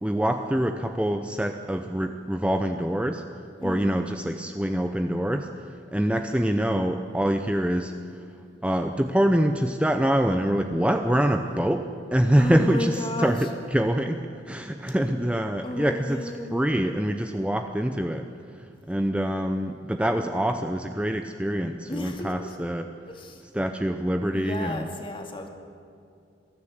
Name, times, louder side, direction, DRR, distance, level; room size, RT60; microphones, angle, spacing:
voice 1, 0.0-3.2 3.6-8.0 8.6-18.3 18.9-22.9 23.5-24.9, equal, 5° right, 6 dB, 0.7 m, -25 dB
voice 2, 3.6-3.9 11.4-11.6 12.4-13.5 14.9-15.0 15.6-16.7 21.9-22.6 23.1-23.4 24.3-25.5, left 1 dB, 30° left, 3 dB, 2.3 m, -34 dB
21.5 x 13.5 x 9.4 m, 2.4 s
head